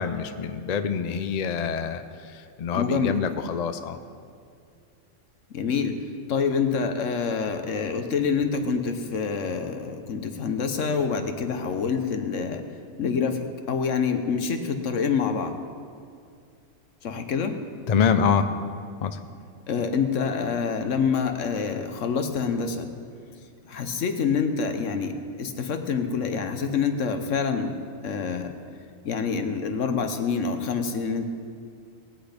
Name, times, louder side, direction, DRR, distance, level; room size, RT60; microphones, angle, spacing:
voice 1, 0.0-4.0 17.9-18.5 19.0-19.2, left 6 dB, 50° left, 9 dB, 0.5 m, -26 dB
voice 2, 2.7-3.2 5.5-6.0 6.3-12.7 13.0-15.5 17.0-17.6 19.7-22.9 23.7-27.8 28.0-28.5 29.0-31.2, left 5 dB, 70° left, 7 dB, 1.3 m, -26 dB
18.5 x 8.2 x 5.1 m, 2.2 s
omnidirectional pair, 1.3 m